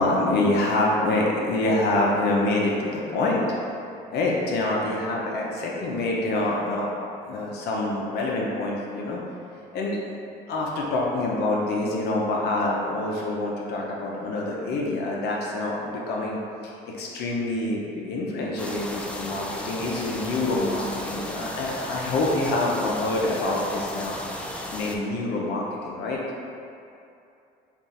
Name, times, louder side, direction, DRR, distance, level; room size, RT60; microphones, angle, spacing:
voice 1, 0.0-3.4 4.1-6.9 7.3-9.2 9.7-10.1 10.5-26.2, left 2 dB, 75° left, -3 dB, 0.7 m, -26 dB
sound 1, 18.6-25.0, left 1 dB, 5° left, 0.3 m, -35 dB
3.5 x 2.5 x 4.0 m, 2.6 s
cardioid pair, 110°, 17 cm